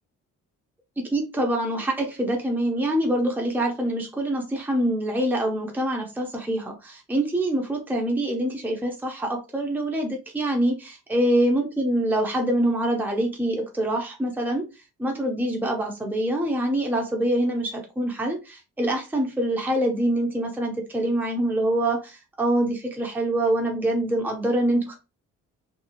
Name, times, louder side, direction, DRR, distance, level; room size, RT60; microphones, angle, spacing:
voice 1, 1.0-14.7 15.0-24.9, right 1 dB, 5° right, 1 dB, 0.7 m, -25 dB
2.7 x 2.3 x 2.8 m, 0.28 s
cardioid pair, 90°, 30 cm